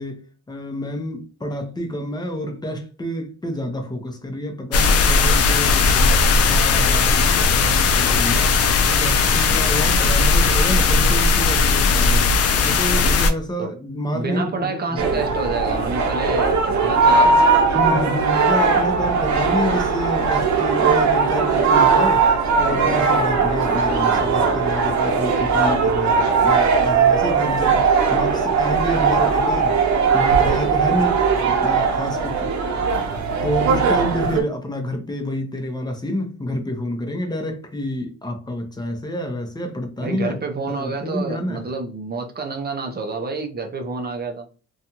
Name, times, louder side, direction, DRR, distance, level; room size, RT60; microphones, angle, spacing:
voice 1, 0.0-8.5 8.9-12.3 12.6-15.3 17.7-32.6 33.4-40.4 40.7-41.7, left 1 dB, 15° left, 0.7 m, -28 dB
sound 1, 4.7-13.3, left 4 dB, 55° left, 0.5 m, -17 dB
voice 2, 14.1-17.4 40.0-44.5, right 3 dB, 35° right, 0.6 m, -28 dB
sound 2, 15.0-34.4, right 5 dB, 70° right, 0.7 m, -19 dB
2.5 x 2.3 x 2.8 m
cardioid pair, 90°, 30 cm